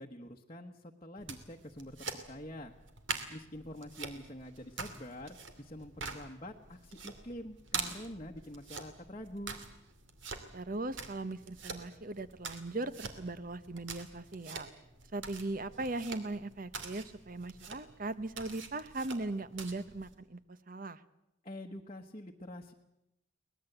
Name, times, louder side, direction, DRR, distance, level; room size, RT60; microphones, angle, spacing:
voice 1, 0.0-2.7 3.3-9.6 21.4-22.7, left 1 dB, 30° left, 0 dB, 1.1 m, -46 dB
sound 1, 1.2-20.1, right 5 dB, 65° right, 2.6 m, -45 dB
voice 2, 10.5-14.7 15.1-21.0, right 2 dB, 40° right, 14 dB, 0.9 m, -39 dB
23.5 x 19.5 x 8.0 m, 0.88 s
head